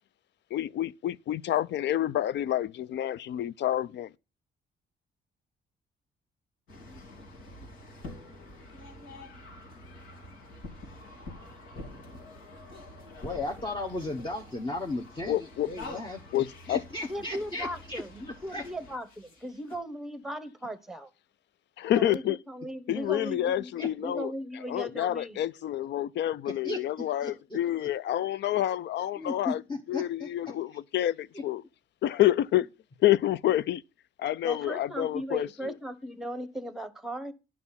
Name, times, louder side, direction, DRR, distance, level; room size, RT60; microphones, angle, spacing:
voice 1, 0.5-4.1 15.3-15.7 16.3-16.8 21.8-22.4 22.9-24.3 24.7-29.6 29.9-31.6 32.0-32.7 33.0-33.8 34.2-35.7, left 13 dB, 65° left, 0.4 m, -28 dB
sound 1, 6.7-19.8, left 2 dB, 85° left, 3.2 m, -47 dB
voice 2, 13.2-18.0 18.5-18.6 23.8-23.9 26.5-27.9 29.2-30.5, left 2 dB, 25° left, 1.1 m, -36 dB
voice 3, 17.1-21.1 21.9-25.4 34.4-37.3, equal, ahead, 1.1 m, -37 dB
9.5 x 6.0 x 5.7 m
cardioid pair, 90°, 20 cm